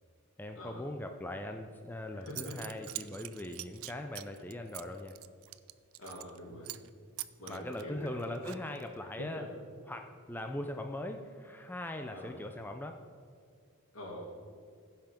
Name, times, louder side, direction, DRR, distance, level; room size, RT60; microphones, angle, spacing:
voice 1, 0.4-5.2 7.5-9.4 9.9-13.0, left 1 dB, 10° left, 5 dB, 0.4 m, -40 dB
Zipper (clothing) / Coin (dropping), 1.9-2.0 2.3-6.4 6.6-6.9 7.2-8.9, right 17 dB, 65° right, 0.4 m, -44 dB
voice 2, 2.1-2.7 6.0-6.7 7.4-8.1 9.2-9.5 12.1-12.3 13.9-14.3, equal, 70° left, -1 dB, 2.4 m, -44 dB
15.0 x 5.8 x 5.1 m, 2.2 s
head